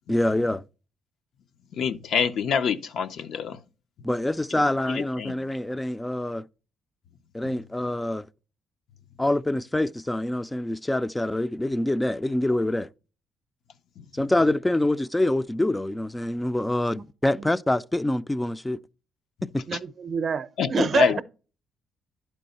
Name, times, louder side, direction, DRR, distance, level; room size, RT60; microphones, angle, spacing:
voice 1, 0.1-0.6 4.0-6.5 7.3-8.3 9.2-12.9 14.1-18.8 19.5-19.6, left 1 dB, 10° left, 0.3 m, -25 dB
voice 2, 1.8-3.6 5.2-5.4 20.6-21.2, left 6 dB, 70° left, 0.5 m, -25 dB
voice 3, 19.7-21.2, right 6 dB, 50° right, 0.6 m, -27 dB
11.0 x 4.6 x 4.0 m
cardioid pair, 90°, 0 cm